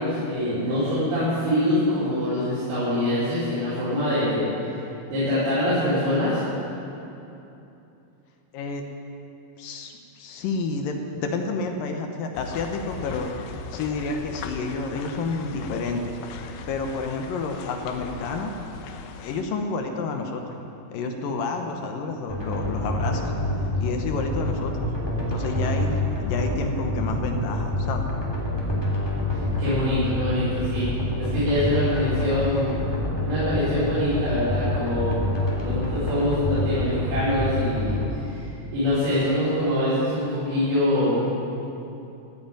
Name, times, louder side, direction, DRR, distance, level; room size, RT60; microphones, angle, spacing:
voice 1, 0.0-4.8 5.1-6.4 29.3-30.9 31.2-32.7 33.2-35.1 35.6-38.5 38.7-41.3, left 1 dB, 75° right, -14 dB, 6.8 m, -24 dB
voice 2, 9.6-13.3 13.7-18.5 19.2-20.5 20.9-23.3 23.8-24.9 25.3-28.1, left 3 dB, 70° left, 4 dB, 2.5 m, -30 dB
sound 1, 12.3-19.4, left 5 dB, 85° left, 2.8 m, -39 dB
sound 2, 22.3-38.1, left 1 dB, 5° left, 2.3 m, -27 dB
15.5 x 8.8 x 9.0 m, 2.8 s
omnidirectional pair, 4.5 m